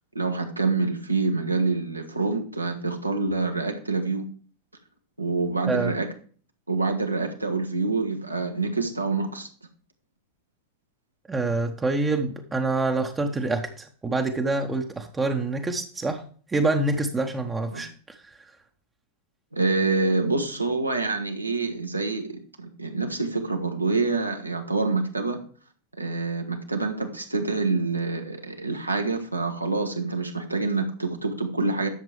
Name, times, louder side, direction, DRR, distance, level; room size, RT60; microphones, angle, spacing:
voice 1, 0.1-4.3 5.2-6.1 6.7-9.5 17.7-17.8 19.5-25.4 26.0-31.9, right 3 dB, 85° right, 1.4 m, -26 dB
voice 2, 5.7-6.0 11.3-16.2 16.5-18.5, right 2 dB, 15° right, 0.9 m, -26 dB
11.0 x 7.1 x 3.3 m
figure-of-eight pair, 90°, 0 cm